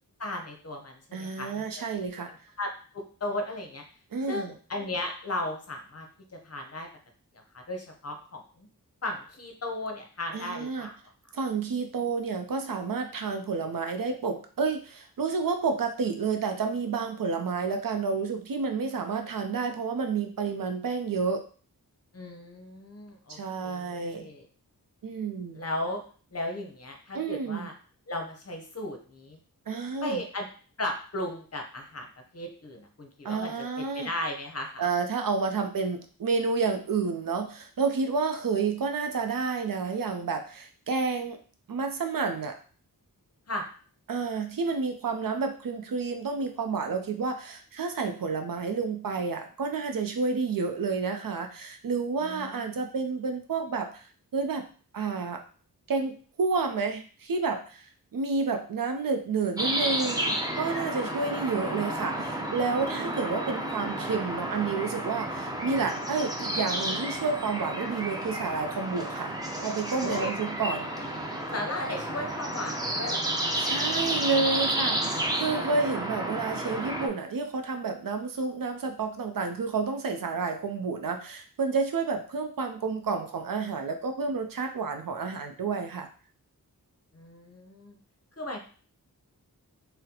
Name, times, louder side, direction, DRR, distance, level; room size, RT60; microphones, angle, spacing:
voice 1, 0.2-1.6 2.6-3.8 4.3-6.1 6.4-6.9 7.5-8.7 9.0-11.0 22.1-24.5 25.5-26.0 26.3-27.7 28.1-29.4 30.0-30.5 30.8-32.1 32.3-34.9 43.5-43.7 52.2-52.6 70.0-70.3 71.5-73.6 87.1-87.9 88.4-88.6, left 1 dB, 40° left, 3 dB, 0.7 m, -35 dB
voice 2, 1.1-2.3 4.1-4.5 10.3-10.9 11.3-21.4 23.3-24.3 25.0-25.6 27.1-27.7 29.7-30.2 33.2-34.1 34.8-41.4 41.7-42.6 44.1-54.7 54.9-55.4 55.9-69.3 69.6-70.9 73.6-86.1, right 4 dB, 65° right, 5 dB, 0.5 m, -30 dB
sound 1, 59.6-77.1, right 1 dB, 10° right, 0.6 m, -31 dB
4.0 x 2.1 x 2.7 m, 0.41 s
wide cardioid pair, 85°, 37 cm